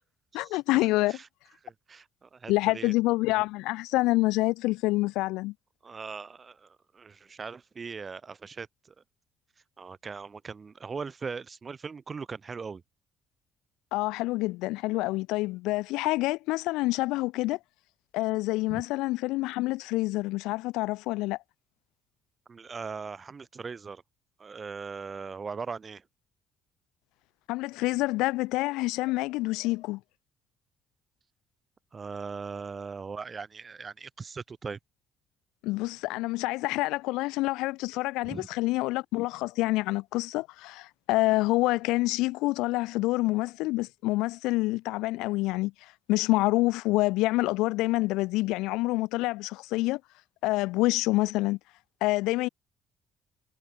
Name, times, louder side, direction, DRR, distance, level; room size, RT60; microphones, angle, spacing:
voice 1, 0.3-1.2 2.5-5.5 13.9-17.6 18.1-21.4 27.5-30.0 35.6-50.0 50.4-51.6 52.0-52.5, left 20 dB, 75° left, 2.2 m, -27 dB
voice 2, 1.6-2.9 5.8-8.7 9.8-12.8 18.7-18.8 22.5-24.0 24.4-26.0 31.9-34.8 38.2-38.5, right 5 dB, 35° right, 3.5 m, -39 dB
hypercardioid pair, 55°, 0 cm